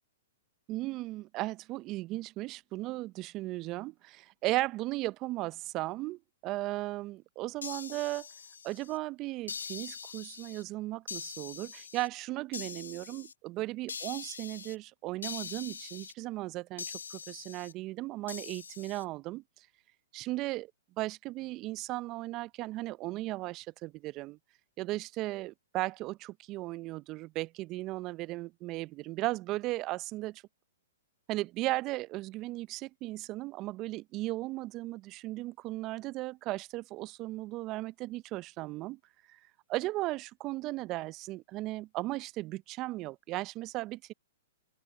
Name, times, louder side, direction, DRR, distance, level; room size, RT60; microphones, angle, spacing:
voice 1, 0.7-8.3 8.6-19.7 20.1-20.7 21.0-24.4 24.8-30.4 31.3-39.0 39.3-39.4 39.7-44.1, right 18 dB, 35° right, 0.6 m, -36 dB
sound 1, 7.6-9.0 9.5-10.6 11.1-12.1 12.5-13.3 13.9-14.8 15.2-16.1 16.8-17.7 18.3-19.0, left 6 dB, 80° left, 1.5 m, -43 dB
open air
hypercardioid pair, 120°, 0 cm